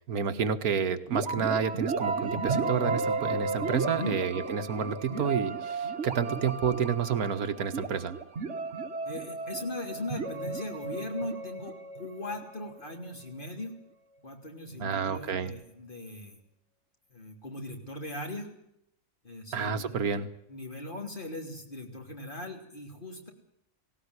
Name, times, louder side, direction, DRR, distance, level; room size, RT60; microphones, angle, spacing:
voice 1, 0.1-8.2 14.8-15.5 19.5-20.3, right 7 dB, 85° right, 10 dB, 1.8 m, -30 dB
sound 1, 1.1-12.8, right 4 dB, 50° right, 1.7 m, -33 dB
voice 2, 9.0-13.7 14.2-16.4 17.1-18.5 19.2-20.0 20.5-23.3, left 1 dB, 35° left, 2 dB, 3.5 m, -39 dB
18.5 x 18.0 x 9.8 m, 0.78 s
omnidirectional pair, 1.5 m